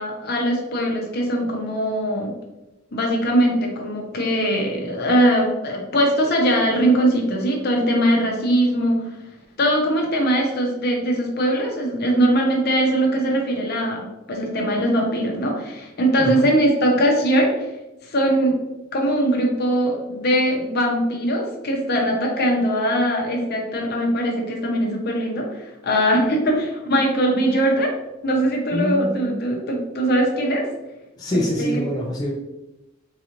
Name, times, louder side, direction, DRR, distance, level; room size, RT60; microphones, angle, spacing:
voice 1, 0.0-2.3 2.9-9.1 9.6-17.5 18.0-18.5 18.9-27.9 28.2-30.7 31.6-31.9, right 1 dB, 50° left, 0 dB, 0.8 m, -21 dB
voice 2, 28.7-29.3 31.2-32.3, equal, 20° left, -4 dB, 0.4 m, -24 dB
4.0 x 2.5 x 2.9 m, 0.95 s
head